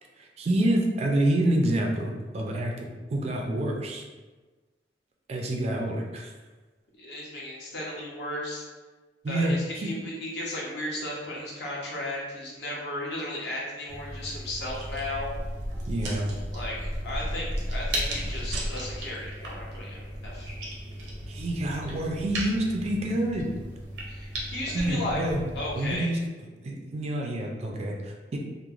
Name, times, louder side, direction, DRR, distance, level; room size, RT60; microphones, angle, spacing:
voice 1, 0.2-4.0 5.3-6.3 9.2-9.9 15.9-16.3 21.3-23.5 24.7-25.4 25.8-26.2 26.6-28.4, right 1 dB, 35° right, 0 dB, 0.3 m, -27 dB
voice 2, 7.0-8.6 9.3-15.3 16.5-20.5 24.1-25.2 25.5-26.1, left 1 dB, 65° left, -4 dB, 0.7 m, -35 dB
sound 1, 13.9-26.0, equal, 80° right, 0.6 m, -35 dB
3.0 x 2.0 x 2.4 m, 1.3 s
head